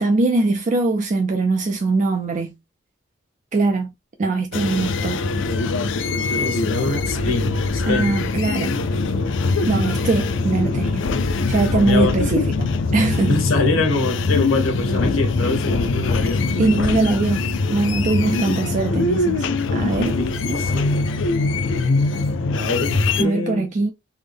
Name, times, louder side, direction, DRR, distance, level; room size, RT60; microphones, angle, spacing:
voice 1, 0.0-2.5 3.5-3.9 4.2-5.2 7.9-8.8 9.7-11.0 11.5-13.4 16.6-20.2 23.1-23.9, right 3 dB, 40° right, 0.4 m, -21 dB
sound 1, 4.5-23.2, left 3 dB, 65° left, 0.4 m, -22 dB
voice 2, 6.4-8.2 11.8-12.3 13.2-16.5 16.8-16.9 20.1-21.0 22.5-23.7, left 3 dB, 85° left, 1.0 m, -24 dB
3.4 x 2.1 x 3.3 m
head